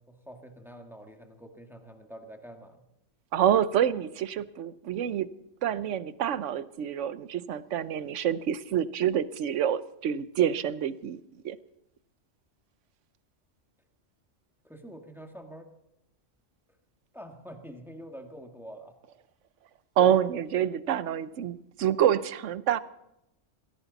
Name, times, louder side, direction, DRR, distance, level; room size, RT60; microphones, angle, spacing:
voice 1, 0.1-2.8 14.6-15.7 17.1-18.9, equal, ahead, 3 dB, 1.7 m, -46 dB
voice 2, 3.3-5.3 5.6-11.6 20.0-22.8, right 10 dB, 75° right, 15 dB, 1.1 m, -27 dB
19.5 x 16.5 x 4.1 m, 0.84 s
omnidirectional pair, 1.3 m